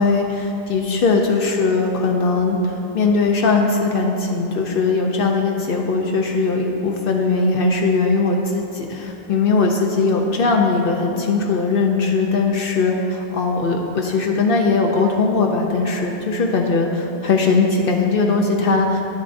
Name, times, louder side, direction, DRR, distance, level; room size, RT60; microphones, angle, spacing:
voice 1, 0.0-12.9 13.3-19.0, left 4 dB, 65° left, 1 dB, 0.7 m, -19 dB
11.0 x 7.2 x 2.6 m, 2.9 s
omnidirectional pair, 1.0 m